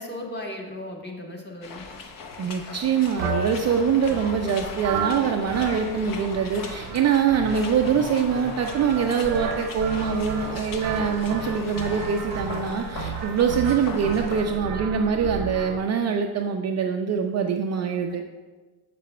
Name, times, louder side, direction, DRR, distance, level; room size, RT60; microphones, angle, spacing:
voice 1, 0.0-1.9 14.7-15.2 18.1-18.2, left 1 dB, 20° left, 0 dB, 1.4 m, -37 dB
sound 1, 1.6-14.4, left 4 dB, 45° left, 0.8 m, -38 dB
voice 2, 2.4-18.2, right 6 dB, 35° right, 4 dB, 0.4 m, -24 dB
Horror Chain, 3.2-15.8, right 6 dB, 85° right, 0.9 m, -33 dB
7.5 x 6.7 x 2.2 m, 1.3 s
supercardioid pair, 70°, 47 cm